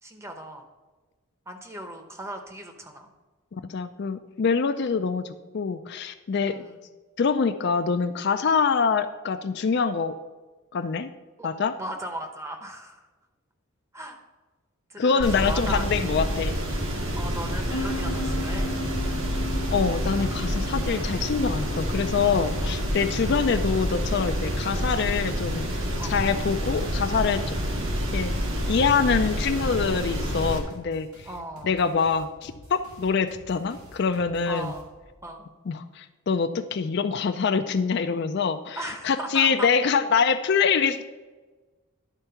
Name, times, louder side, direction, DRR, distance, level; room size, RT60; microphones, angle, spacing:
voice 1, 0.0-0.6 1.5-3.1 6.4-6.9 11.4-11.5 11.8-13.1 13.9-14.2 14.9-15.8 17.2-18.7 22.6-23.0 23.2-23.5 26.0-26.2 31.2-31.8 34.5-34.9 35.2-35.5 38.7-39.7, right 1 dB, 15° right, 4 dB, 0.8 m, -37 dB
voice 2, 3.5-6.6 7.2-10.2 10.7-11.1 11.4-11.7 15.0-16.5 19.7-25.7 26.1-27.6 28.1-28.3 28.7-31.3 31.6-34.7 35.7-38.8 39.0-41.0, left 5 dB, 50° left, 9 dB, 0.4 m, -25 dB
sound 1, 15.2-30.6, equal, 65° right, 1.6 m, -28 dB
sound 2, 17.7-29.2, left 1 dB, 90° left, 0.8 m, -39 dB
sound 3, 28.1-35.3, equal, 85° right, 2.3 m, -50 dB
11.0 x 4.5 x 5.7 m, 1.3 s
head